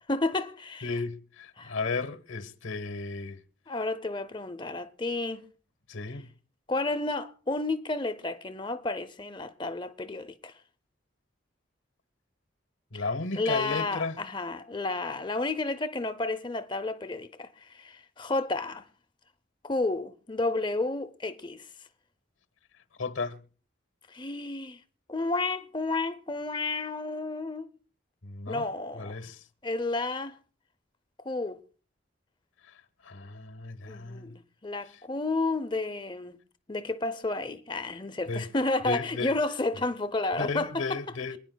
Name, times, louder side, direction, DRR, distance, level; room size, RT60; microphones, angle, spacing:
voice 1, 0.1-1.0 1.6-1.8 3.7-5.5 6.7-10.5 12.9-13.0 13.3-18.9 19.6-21.7 24.1-24.8 25.1-27.7 28.5-29.2 29.6-30.4 31.2-31.6 33.9-36.4 36.7-40.8, left 2 dB, 25° left, 0.6 m, -31 dB
voice 2, 0.8-3.4 5.9-6.3 12.9-14.2 23.0-23.4 28.2-28.7 28.9-29.4 33.0-34.4 38.3-38.5 38.8-39.3 40.4-41.4, left 3 dB, 85° left, 1.1 m, -34 dB
27.0 x 9.9 x 2.2 m
head